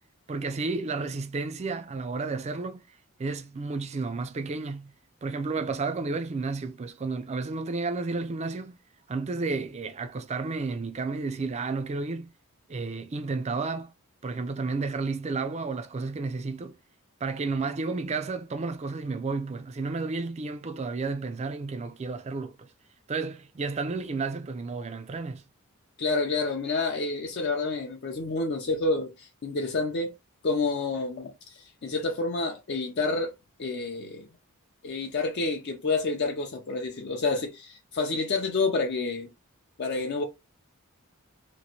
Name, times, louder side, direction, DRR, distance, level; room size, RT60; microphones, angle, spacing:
voice 1, 0.3-2.8 3.2-4.9 5.2-8.8 9.1-12.3 12.7-13.9 14.2-16.8 17.2-22.7 23.1-25.5, right 3 dB, 30° right, 0.4 m, -32 dB
voice 2, 26.0-30.1 30.4-33.3 33.6-34.3 34.8-39.3 39.8-40.2, left 3 dB, 50° left, 0.5 m, -29 dB
3.0 x 2.5 x 2.8 m
head